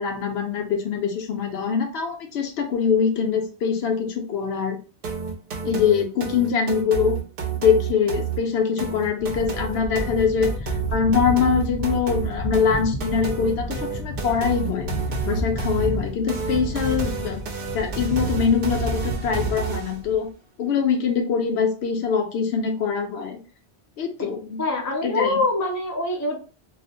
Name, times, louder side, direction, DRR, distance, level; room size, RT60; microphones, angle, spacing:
voice 1, 0.0-4.8 5.6-7.2 7.6-14.9 15.2-17.4 17.7-20.3 20.6-23.4 24.0-24.6 25.0-25.4, left 6 dB, 80° left, 4 dB, 0.8 m, -23 dB
sound 1, 5.0-20.1, right 7 dB, 65° right, 0.7 m, -31 dB
sound 2, 9.2-20.3, left 1 dB, 45° left, 0.7 m, -31 dB
voice 2, 24.6-26.4, left 2 dB, 30° left, 1 dB, 0.3 m, -24 dB
2.4 x 2.0 x 2.6 m, 0.36 s
omnidirectional pair, 1.1 m